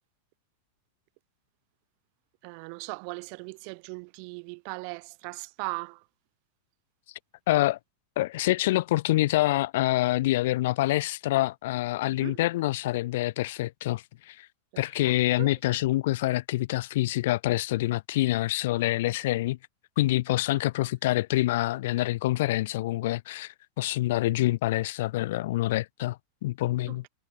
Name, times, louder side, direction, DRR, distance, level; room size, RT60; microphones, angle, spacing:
voice 1, 2.4-6.0 12.0-12.4 14.7-15.5 20.5-20.6 26.9-27.1, right 40 dB or more, 45° right, 6.6 m, -39 dB
voice 2, 7.5-7.8 8.2-14.5 14.8-19.6 20.0-27.0, left 17 dB, 55° left, 1.1 m, -26 dB
figure-of-eight pair, 90°, 0 cm